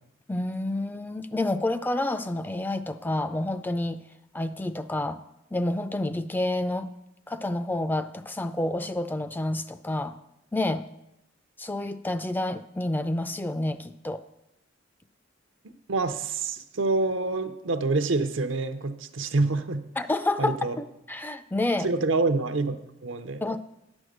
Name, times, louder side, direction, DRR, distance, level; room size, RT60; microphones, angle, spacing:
voice 1, 0.3-4.0 4.3-5.2 5.5-6.9 7.3-10.2 10.5-10.9 11.6-14.2 20.0-21.9 23.4-23.6, left 1 dB, 10° left, 11 dB, 0.3 m, -29 dB
voice 2, 15.6-19.8 20.4-20.8 21.8-23.6, right 3 dB, 85° right, 9 dB, 0.7 m, -27 dB
10.0 x 6.2 x 6.6 m, 0.88 s
head